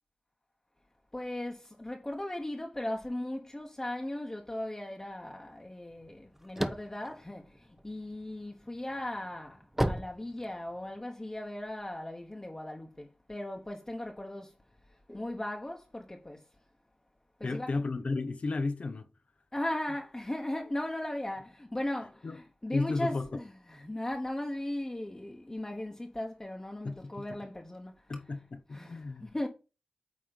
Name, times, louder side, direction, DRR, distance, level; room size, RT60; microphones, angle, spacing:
voice 1, 1.1-14.5 14.9-16.4 17.4-17.7 19.5-28.1 28.7-29.5, left 1 dB, 20° left, 1.1 m, -37 dB
sound 1, 6.0-8.2 8.7-11.0, right 1 dB, 10° right, 0.7 m, -33 dB
voice 2, 17.4-19.1 22.2-22.4 22.7-23.3 26.8-27.3 28.1-29.3, left 3 dB, 60° left, 0.7 m, -33 dB
8.9 x 3.1 x 5.2 m
wide cardioid pair, 60°, 2 cm